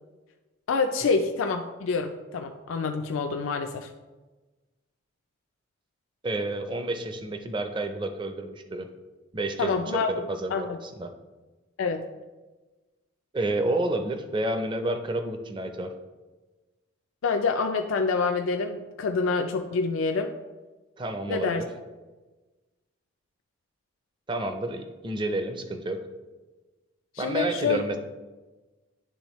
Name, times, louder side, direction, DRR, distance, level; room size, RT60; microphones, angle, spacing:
voice 1, 0.7-3.9 9.6-10.8 11.8-12.1 17.2-20.3 21.3-21.6 27.1-27.8, left 4 dB, 80° left, 4 dB, 0.4 m, -27 dB
voice 2, 6.2-8.9 9.3-9.8 10.1-11.1 13.3-15.9 21.0-21.7 24.3-26.0 27.2-28.0, right 1 dB, 25° right, 6 dB, 0.5 m, -30 dB
10.0 x 3.5 x 3.0 m, 1.2 s
head